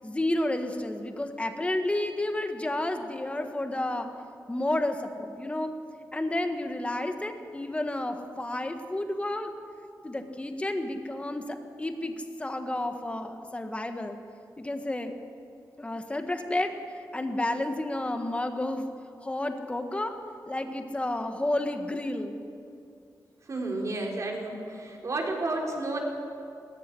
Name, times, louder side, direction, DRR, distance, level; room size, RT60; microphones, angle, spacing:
voice 1, 0.0-4.1 4.5-5.7 6.1-9.5 10.0-14.2 14.6-15.1 15.8-18.9 19.2-20.1 20.4-22.4, left 1 dB, 15° left, 6 dB, 1.5 m, -31 dB
voice 2, 23.5-26.0, right 2 dB, 50° right, 0 dB, 3.9 m, -31 dB
20.0 x 14.5 x 9.9 m, 2.5 s
wide cardioid pair, 130°, 7 cm